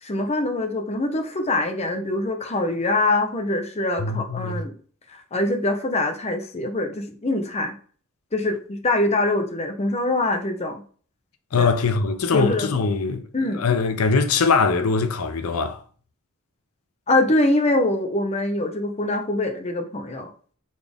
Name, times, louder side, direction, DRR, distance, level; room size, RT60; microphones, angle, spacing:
voice 1, 0.0-4.8 5.3-7.8 8.3-10.8 11.5-11.7 12.3-12.7 13.3-13.6 17.1-20.3, left 2 dB, 30° left, 0.7 m, -24 dB
voice 2, 4.0-4.6 11.5-13.2 13.6-15.8, left 4 dB, 85° left, 0.6 m, -22 dB
4.1 x 3.5 x 3.4 m
head